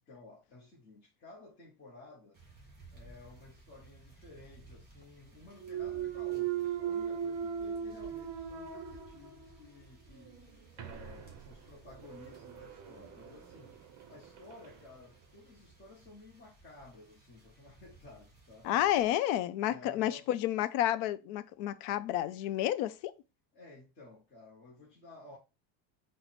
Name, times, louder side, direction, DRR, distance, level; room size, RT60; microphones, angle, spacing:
voice 1, 0.1-2.4 2.9-18.7 19.6-20.4 23.5-25.4, left 2 dB, 20° left, 0.6 m, -54 dB
sound 1, 2.3-19.2, right 2 dB, 20° right, 1.6 m, -58 dB
Thump thud, 5.6-9.6 10.1-14.8, right 9 dB, 35° right, 0.6 m, -39 dB
voice 2, 18.6-23.1, left 12 dB, 75° left, 0.5 m, -30 dB
4.5 x 2.0 x 4.1 m
cardioid pair, 165°, 50 cm